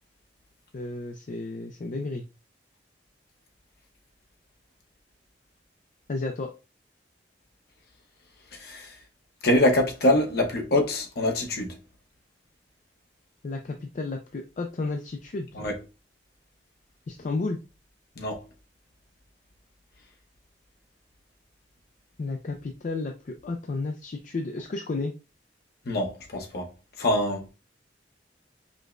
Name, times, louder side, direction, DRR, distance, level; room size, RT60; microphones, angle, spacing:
voice 1, 0.7-2.2 6.1-6.5 13.4-15.5 17.1-17.6 22.2-25.1, left 3 dB, 45° left, 0.4 m, -32 dB
voice 2, 8.5-8.9 9.4-11.8 15.5-15.8 18.2-18.4 25.8-26.7 27.0-27.5, left 1 dB, 60° left, 0.9 m, -24 dB
5.0 x 2.1 x 2.4 m
head